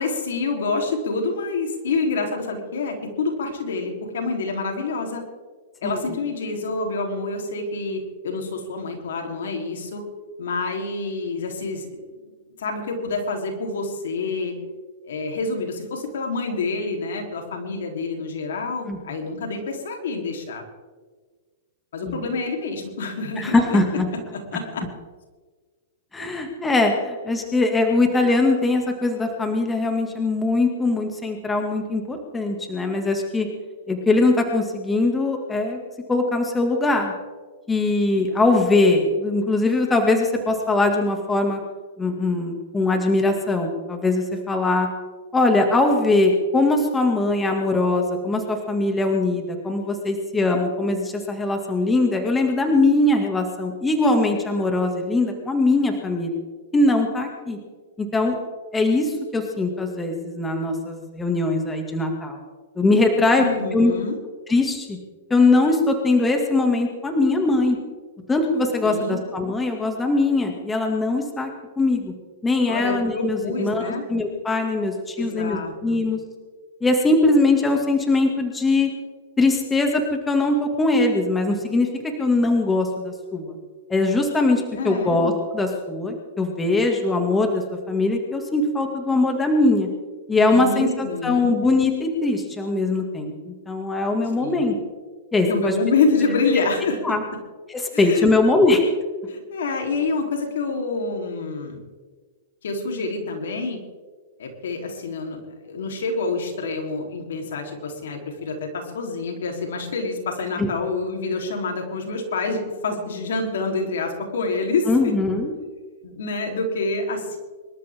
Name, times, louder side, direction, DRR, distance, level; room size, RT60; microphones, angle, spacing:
voice 1, 0.0-5.2 5.8-10.0 10.4-12.2 12.6-14.6 15.0-20.6 21.9-23.8 24.3-24.9 63.4-64.2 68.8-69.2 72.7-74.1 75.2-76.0 84.8-85.2 90.5-91.6 94.4-94.7 95.5-97.2 97.9-98.3 99.3-101.9 102.6-103.8 104.4-115.1 116.0-117.4, left 3 dB, 75° left, 2 dB, 3.7 m, -27 dB
voice 2, 23.4-24.1 26.1-33.5 33.9-35.8 36.1-37.1 37.7-41.6 42.0-44.9 45.3-56.4 56.7-57.6 58.0-58.4 58.7-62.4 62.8-63.5 63.7-63.9 64.5-65.0 65.3-67.8 68.3-71.5 71.8-72.1 72.4-76.2 76.8-78.9 79.4-81.9 82.2-83.5 83.9-89.9 90.3-94.8 95.3-95.7 97.0-97.2 97.7-98.8 110.6-110.7 114.9-115.5, left 2 dB, 10° left, 3 dB, 2.3 m, -21 dB
25.5 x 13.0 x 3.7 m, 1.4 s
hypercardioid pair, 130°, 0 cm